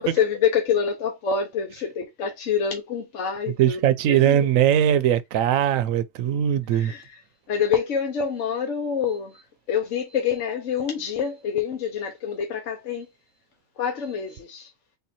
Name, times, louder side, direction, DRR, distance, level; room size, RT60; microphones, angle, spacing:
voice 1, 0.0-3.8 4.1-4.5 6.7-7.0 7.5-9.4 9.7-13.1 13.8-14.7, left 7 dB, 70° left, 1.2 m, -26 dB
voice 2, 3.6-6.9, right 10 dB, 85° right, 1.0 m, -20 dB
3.7 x 2.7 x 4.1 m
omnidirectional pair, 1.3 m